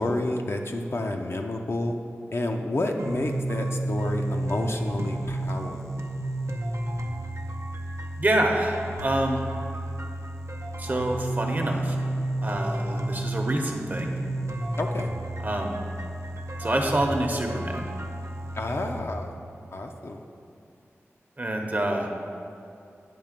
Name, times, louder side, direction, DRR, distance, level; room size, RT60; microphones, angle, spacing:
voice 1, 0.0-2.0 2.3-5.8 14.8-15.1 18.5-19.3 19.7-20.2, left 2 dB, 60° left, 3 dB, 0.6 m, -29 dB
sound 1, 3.0-19.0, right 1 dB, 65° right, 0.6 m, -31 dB
voice 2, 8.2-9.4 10.8-12.0 12.4-14.2 15.4-15.8 16.6-17.9 21.4-22.1, right 1 dB, 40° right, 2 dB, 0.9 m, -26 dB
8.7 x 3.3 x 6.6 m, 2.6 s
wide cardioid pair, 60°, 5 cm